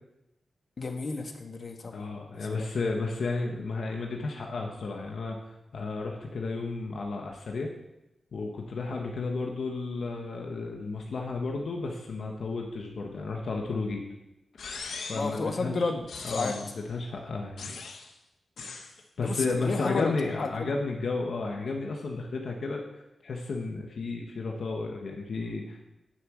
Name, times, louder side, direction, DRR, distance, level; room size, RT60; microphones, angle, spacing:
voice 1, 0.8-2.7 15.1-16.5 19.2-20.1 20.4-20.7, left 3 dB, 50° left, 5 dB, 1.5 m, -32 dB
voice 2, 1.9-5.4 5.7-7.7 8.3-14.0 15.0-15.9 16.2-17.6 19.2-25.8, left 3 dB, 65° left, 1 dB, 1.4 m, -33 dB
sound 1, 14.6-15.4 16.1-16.8 17.6-18.1 18.6-18.9, left 4 dB, 85° left, 1.4 m, -40 dB
9.5 x 7.7 x 8.7 m, 0.93 s
wide cardioid pair, 115°, 0 cm